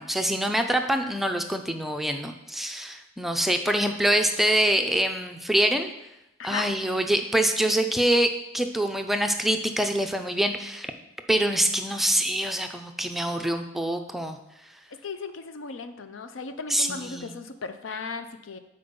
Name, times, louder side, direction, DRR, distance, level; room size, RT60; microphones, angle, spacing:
voice 1, 0.0-5.9 6.4-10.9 11.3-14.4 16.7-17.3, right 1 dB, ahead, 5 dB, 0.4 m, -25 dB
voice 2, 14.9-18.6, left 4 dB, 85° left, 10 dB, 0.6 m, -36 dB
6.9 x 4.4 x 5.1 m, 0.89 s
head